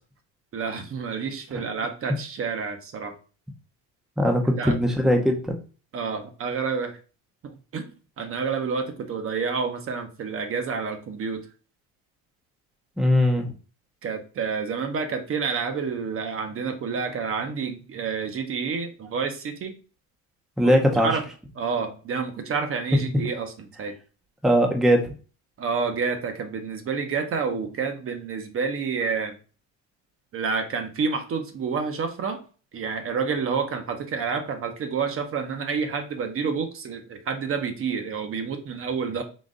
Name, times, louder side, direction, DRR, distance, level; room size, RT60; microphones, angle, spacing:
voice 1, 0.5-3.2 4.6-4.8 5.9-7.0 7.4-7.9 8.2-11.4 14.0-19.7 20.6-20.7 21.0-21.3 21.6-23.9 25.6-29.3 30.3-32.4 32.7-39.2, right 5 dB, 40° right, 6 dB, 0.8 m, -29 dB
voice 2, 4.2-5.5 13.0-13.5 20.6-21.1 24.4-25.1, equal, ahead, 3 dB, 0.6 m, -20 dB
3.9 x 2.5 x 3.7 m, 0.35 s
cardioid pair, 110°, 34 cm